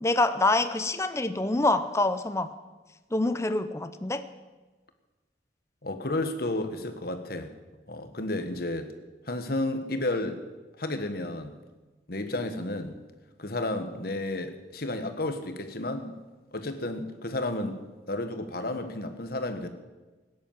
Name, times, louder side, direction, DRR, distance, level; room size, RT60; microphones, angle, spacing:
voice 1, 0.0-2.5 3.1-4.2, left 2 dB, 15° left, 10 dB, 0.6 m, -26 dB
voice 2, 5.8-7.5 7.9-8.9 9.3-10.4 10.8-11.5 12.1-13.0 13.4-16.2 16.5-17.8 18.1-19.7, left 2 dB, 55° left, 8 dB, 1.5 m, -32 dB
17.0 x 10.5 x 7.4 m, 1.2 s
head